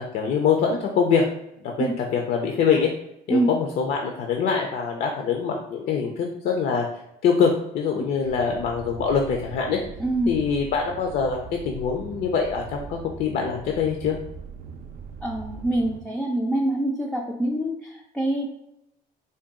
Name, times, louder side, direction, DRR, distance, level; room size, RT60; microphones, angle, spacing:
voice 1, 0.1-1.2 1.6-2.9 3.3-6.9 7.2-9.8 10.3-11.4 11.6-14.2, left 6 dB, 65° left, 2 dB, 0.5 m, -24 dB
sound 1, 8.2-16.0, right 6 dB, 60° right, 0.4 m, -40 dB
voice 2, 10.0-10.4 15.2-18.5, right 1 dB, 5° left, -1 dB, 0.3 m, -25 dB
3.8 x 2.2 x 3.6 m, 0.83 s
cardioid pair, 110°, 17 cm